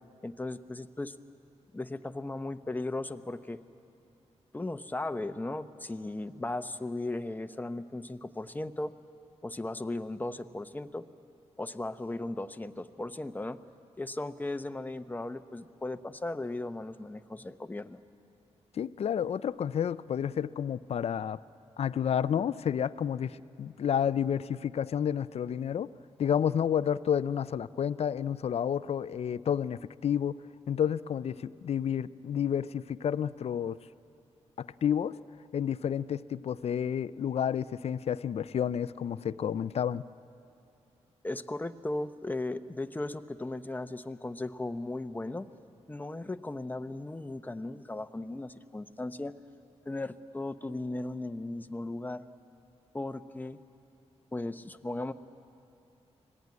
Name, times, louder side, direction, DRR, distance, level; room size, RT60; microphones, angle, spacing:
voice 1, 0.2-1.1 1.7-3.6 4.5-8.9 9.4-11.0 11.6-13.6 14.0-18.0 41.2-45.5 45.9-49.3 49.8-52.2 52.9-53.6 54.3-55.1, left 2 dB, 15° left, 9 dB, 0.8 m, -36 dB
voice 2, 18.7-21.4 21.8-25.9 26.2-30.4 30.7-33.8 34.6-35.2 35.5-40.0, left 8 dB, 65° left, 16 dB, 0.5 m, -30 dB
25.5 x 18.0 x 9.5 m, 2.7 s
cardioid pair, 85°, 11 cm